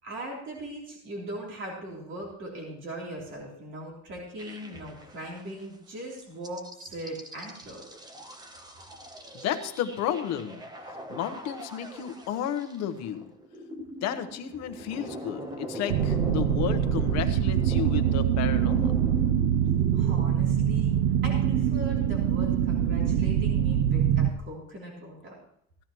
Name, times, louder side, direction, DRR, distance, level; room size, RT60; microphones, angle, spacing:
voice 1, 0.0-7.8 19.9-20.9 21.2-25.3, right 1 dB, 40° right, -3 dB, 3.4 m, -39 dB
sound 1, 4.4-5.7 6.1-23.2, equal, 15° right, 0.9 m, -41 dB
voice 2, 9.3-10.6 11.1-13.3 14.0-18.9, left 10 dB, 60° left, 8 dB, 1.1 m, -32 dB
sound 2, 15.9-24.3, right 9 dB, 70° right, 0.7 m, -24 dB
16.0 x 12.0 x 3.1 m, 0.69 s
cardioid pair, 180°, 30 cm